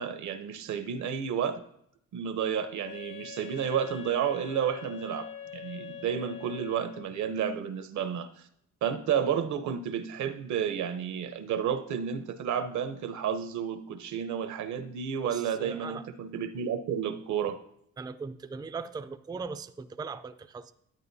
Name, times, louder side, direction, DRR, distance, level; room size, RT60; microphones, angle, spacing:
voice 1, 0.0-1.6 2.1-8.5 8.8-17.6, right 8 dB, 70° right, 10 dB, 0.9 m, -31 dB
Wind instrument woodwind instrument, 2.8-7.3, left 7 dB, 90° left, 2.3 m, -44 dB
voice 2, 15.2-16.1 18.0-20.7, right 4 dB, 15° right, 10 dB, 0.4 m, -39 dB
11.0 x 9.0 x 2.7 m, 0.71 s
cardioid pair, 90°, 30 cm